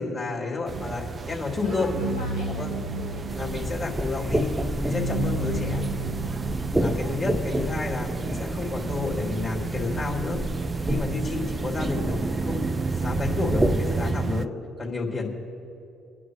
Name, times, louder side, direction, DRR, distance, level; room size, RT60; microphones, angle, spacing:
voice 1, 0.0-1.9 2.4-2.7 3.3-4.5 4.8-5.8 6.8-10.4 10.8-15.3, left 3 dB, 40° left, -1 dB, 3.4 m, -30 dB
sound 1, 0.7-14.5, right 4 dB, 35° right, 0.4 m, -32 dB
sound 2, 0.7-7.0, right 3 dB, 85° right, 0.7 m, -34 dB
voice 2, 1.6-3.7 6.9-7.2, left 3 dB, 85° left, -3 dB, 1.1 m, -41 dB
sound 3, 3.3-14.1, equal, 10° right, 1.0 m, -30 dB
27.0 x 9.9 x 3.2 m, 2.7 s
hypercardioid pair, 55°, 0 cm